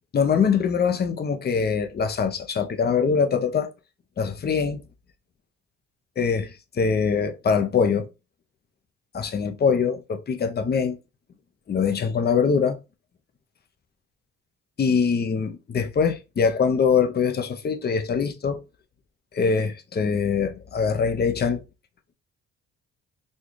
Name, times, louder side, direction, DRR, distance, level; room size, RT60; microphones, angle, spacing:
voice 1, 0.1-3.7 4.2-4.8 6.2-8.1 9.1-11.0 11.7-12.8 14.8-18.6 19.3-21.6, left 6 dB, 35° left, 0.6 m, -23 dB
4.2 x 2.3 x 3.1 m
cardioid pair, 90°, 30 cm